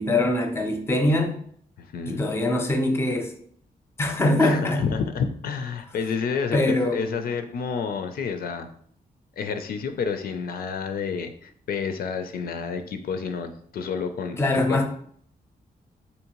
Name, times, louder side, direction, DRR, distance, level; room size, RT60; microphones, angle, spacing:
voice 1, 0.0-1.4 2.1-3.3 4.0-4.9 6.5-7.0 14.4-14.9, left 1 dB, 15° left, 0.5 m, -23 dB
voice 2, 1.8-2.3 4.4-8.7 9.4-14.4 14.7-14.8, left 6 dB, 70° left, 0.4 m, -29 dB
4.4 x 2.7 x 2.9 m
wide cardioid pair, 130°, 16 cm